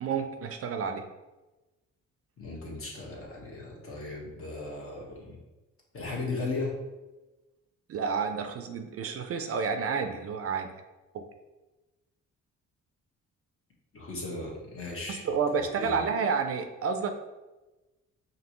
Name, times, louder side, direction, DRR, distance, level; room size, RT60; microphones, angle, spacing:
voice 1, 0.0-1.0 7.9-10.7 11.1-11.2 15.1-17.1, right 5 dB, 50° right, 7 dB, 0.5 m, -30 dB
voice 2, 2.4-5.4 5.9-6.8 13.9-15.2 15.5-16.1, left 3 dB, 45° left, -2 dB, 1.4 m, -36 dB
5.1 x 2.8 x 3.0 m, 1.1 s
cardioid pair, 90°, 30 cm